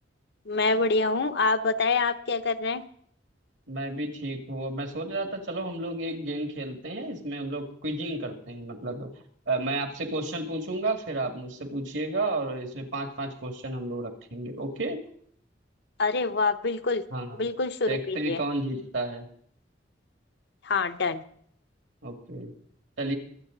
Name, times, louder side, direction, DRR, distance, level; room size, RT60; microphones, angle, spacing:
voice 1, 0.5-2.8 16.0-17.0 17.4-18.4 20.6-21.2, left 3 dB, 65° left, 10 dB, 0.8 m, -26 dB
voice 2, 3.7-9.1 9.5-15.0 17.1-17.4 17.9-19.3 22.0-22.5 23.0-23.1, right 2 dB, 75° right, 4 dB, 2.3 m, -32 dB
23.5 x 8.2 x 3.9 m, 0.63 s
head